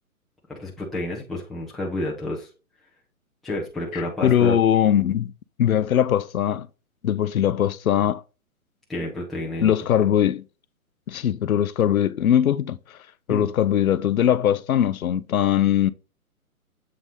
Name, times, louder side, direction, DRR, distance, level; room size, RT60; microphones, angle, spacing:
voice 1, 0.5-2.5 3.4-4.6 8.9-9.7 13.3-13.5, left 1 dB, ahead, 0.5 m, -30 dB
voice 2, 3.9-5.3 5.6-6.7 7.0-8.2 9.6-10.4 11.1-13.0 13.3-15.9, left 10 dB, 70° left, 0.7 m, -21 dB
7.7 x 4.0 x 3.4 m
figure-of-eight pair, 135°, 43 cm